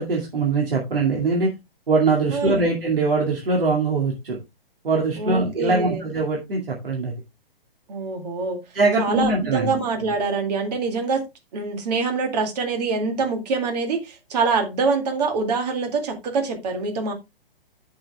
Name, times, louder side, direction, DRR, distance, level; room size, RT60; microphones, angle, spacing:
voice 1, 0.0-1.5 1.9-4.4 4.8-7.1 8.7-9.7, right 3 dB, 65° right, 2.4 m, -22 dB
voice 2, 2.3-2.7 5.2-6.0 7.9-8.6 9.0-11.2 11.5-17.1, right 4 dB, 45° right, 2.2 m, -25 dB
14.0 x 6.3 x 2.3 m
figure-of-eight pair, 125°, 30 cm